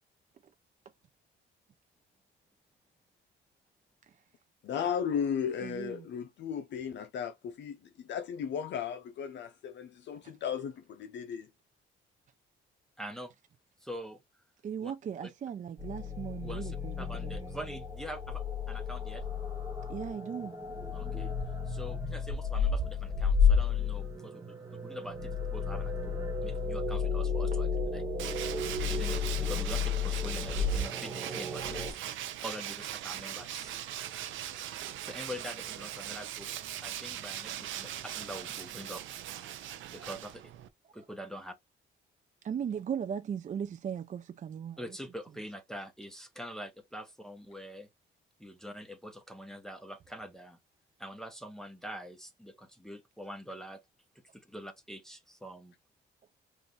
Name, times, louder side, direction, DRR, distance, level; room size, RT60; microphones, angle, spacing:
voice 1, 4.6-11.5, left 8 dB, 65° left, 0.6 m, -35 dB
voice 2, 5.6-6.1 14.6-16.9 17.2-17.3 19.9-20.5 32.1-32.2 42.4-44.8, right 8 dB, 40° right, 0.4 m, -37 dB
voice 3, 13.0-13.3 13.8-14.2 14.8-14.9 15.2-15.3 16.4-19.2 20.9-21.3 21.7-24.5 24.8-28.0 28.8-32.0 32.4-33.7 35.0-36.5 36.8-39.2 39.9-40.3 40.9-41.5 44.8-47.9 48.4-50.6 51.0-53.8 54.3-55.7, equal, ahead, 0.9 m, -44 dB
sound 1, 15.8-31.9, left 5 dB, 15° right, 1.4 m, -32 dB
Tools, 28.2-40.7, right 11 dB, 80° right, 0.6 m, -40 dB
5.1 x 2.5 x 3.1 m
cardioid pair, 90°, 20 cm